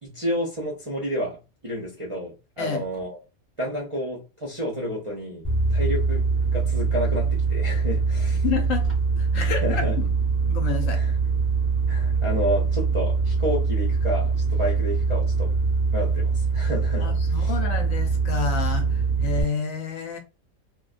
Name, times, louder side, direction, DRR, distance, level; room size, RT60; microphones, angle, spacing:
voice 1, 0.0-1.4 1.6-3.2 3.6-6.2 6.5-8.4 9.6-10.0 10.9-11.1 11.9-15.5 15.9-17.1 17.4-17.5, equal, 40° right, 0.4 m, -30 dB
sound 1, 5.4-19.4, right 4 dB, 10° left, 0.6 m, -23 dB
voice 2, 8.4-8.9 9.2-9.8 10.4-11.0 17.0-20.2, left 6 dB, 70° left, 0.9 m, -29 dB
2.5 x 2.1 x 2.4 m
omnidirectional pair, 1.5 m